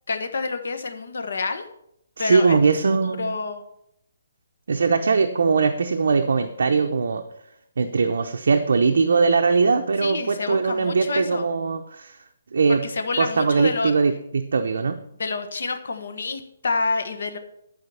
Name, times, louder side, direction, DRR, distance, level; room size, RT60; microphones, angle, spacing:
voice 1, 0.1-1.7 2.2-2.6 3.0-3.6 10.0-11.5 12.7-13.9 15.2-17.4, left 3 dB, 65° left, 7 dB, 1.3 m, -28 dB
voice 2, 2.2-3.3 4.7-7.2 7.8-12.2 12.5-12.8 13.2-15.0, right 4 dB, 65° right, 5 dB, 0.7 m, -21 dB
11.5 x 5.0 x 7.0 m, 0.76 s
hypercardioid pair, 175°, 0 cm